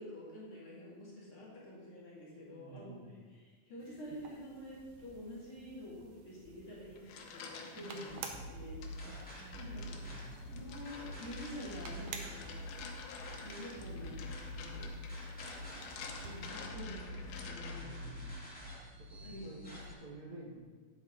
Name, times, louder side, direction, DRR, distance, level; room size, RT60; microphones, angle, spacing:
voice 1, 0.0-9.0 9.6-9.9 10.5-12.5 13.4-14.2 14.6-14.9 16.2-18.1 19.2-19.5, equal, 45° left, -7 dB, 3.3 m, -48 dB
voice 2, 2.5-3.1 7.6-8.3 9.0-9.1 9.4-9.5 9.9-10.2 13.7-14.1 17.4-18.4 18.8-20.5, right 2 dB, 70° right, -3 dB, 3.2 m, -52 dB
sound 1, 3.8-16.5, right 5 dB, 90° right, 2.4 m, -53 dB
sound 2, 6.8-8.3 8.8-18.0, left 5 dB, 90° left, 2.5 m, -50 dB
sound 3, 8.1-19.9, left 1 dB, 5° left, 1.5 m, -46 dB
9.6 x 8.9 x 4.0 m, 1.5 s
omnidirectional pair, 3.5 m